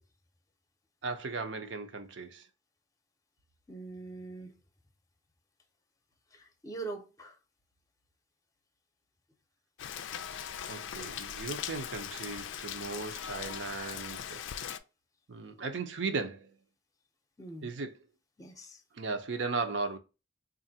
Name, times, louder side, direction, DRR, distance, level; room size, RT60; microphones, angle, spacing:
voice 1, 1.0-2.5 10.7-14.4 15.3-16.5 17.6-18.0 18.9-20.0, right 4 dB, 75° right, 0.6 m, -36 dB
voice 2, 3.7-4.5 6.3-7.4 17.4-17.7 18.4-18.8, right 3 dB, 20° left, 0.6 m, -43 dB
Rain, 9.8-14.8, left 9 dB, 85° left, 0.4 m, -40 dB
4.2 x 2.5 x 2.7 m
head